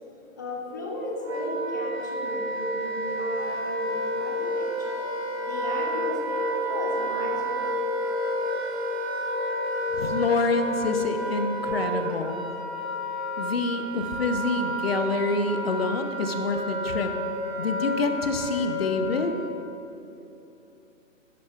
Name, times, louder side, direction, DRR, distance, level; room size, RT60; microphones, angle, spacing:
voice 1, 0.4-5.0 5.4-7.7, left 3 dB, 15° left, 0 dB, 0.5 m, -36 dB
Wind instrument woodwind instrument, 0.7-19.6, equal, 55° right, 1.9 m, -30 dB
voice 2, 9.9-12.5 13.4-17.1 17.6-19.3, left 3 dB, 50° left, 7 dB, 0.7 m, -27 dB
11.0 x 10.5 x 2.4 m, 2.9 s
figure-of-eight pair, 130°, 39 cm